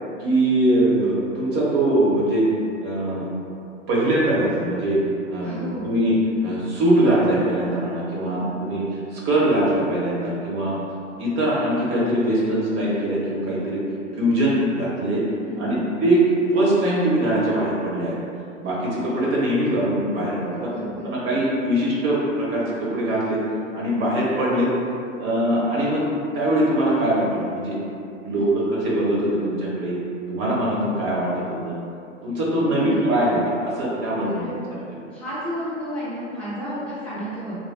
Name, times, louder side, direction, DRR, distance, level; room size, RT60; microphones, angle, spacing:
voice 1, 0.2-2.5 2.8-3.3 3.9-5.0 5.3-6.2 6.4-8.9 9.1-10.8 11.2-13.8 14.1-15.2 15.6-18.2 18.6-20.7 21.0-23.4 23.7-24.7 25.2-26.0 26.3-27.8 28.2-30.0 30.3-31.8 32.2-34.4 34.7-35.0, right 1 dB, 30° right, -6 dB, 0.8 m, -22 dB
voice 2, 5.4-5.9 8.3-8.5 15.4-15.9 20.6-21.1 28.3-28.5 32.7-33.0 34.2-34.6 35.1-37.6, equal, 5° left, -12 dB, 0.3 m, -32 dB
3.0 x 2.7 x 2.2 m, 2.6 s
figure-of-eight pair, 105°, 39 cm